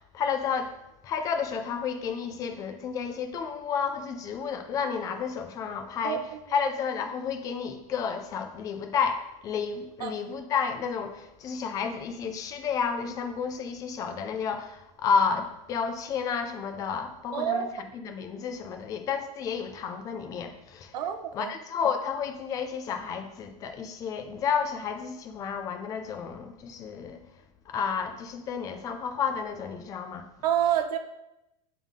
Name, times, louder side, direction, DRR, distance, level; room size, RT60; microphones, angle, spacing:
voice 1, 0.1-20.9 21.3-27.2 27.7-30.3, left 6 dB, 20° left, 0.4 m, -31 dB
voice 2, 17.3-17.7 20.9-21.5 30.4-31.0, right 10 dB, 90° right, 0.8 m, -28 dB
9.0 x 3.6 x 3.6 m
supercardioid pair, 170°, 20 cm